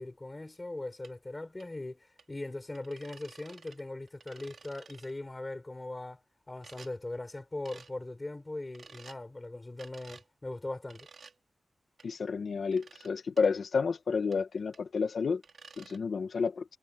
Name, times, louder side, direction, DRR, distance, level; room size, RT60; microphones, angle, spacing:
voice 1, 0.0-6.2 6.5-11.1, left 2 dB, 20° left, 4.6 m, -40 dB
sound 1, 1.0-1.1 1.6-1.7 2.2-2.3 2.7-3.8 4.1-5.1 6.6-6.9 7.7-7.9 8.7-9.2 9.8-10.3 10.9-11.3 12.0-12.1 12.7-13.1 13.4-13.5 14.3-14.4 14.7-14.8 15.4-16.0, right 5 dB, 70° right, 5.4 m, -53 dB
voice 2, 12.0-15.4 15.8-16.6, left 5 dB, 75° left, 1.3 m, -30 dB
wide cardioid pair, 150°, 0 cm